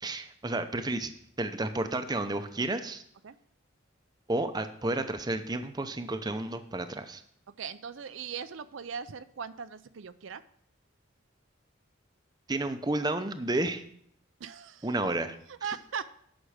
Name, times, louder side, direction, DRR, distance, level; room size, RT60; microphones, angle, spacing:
voice 1, 0.0-1.1 1.4-3.0 4.3-7.2 12.5-13.8 14.8-15.3, right 2 dB, 20° right, 9 dB, 0.6 m, -31 dB
voice 2, 7.6-10.4 14.4-14.9 15.5-16.1, right 7 dB, 75° right, 12 dB, 0.5 m, -39 dB
10.0 x 6.0 x 6.3 m, 0.69 s
head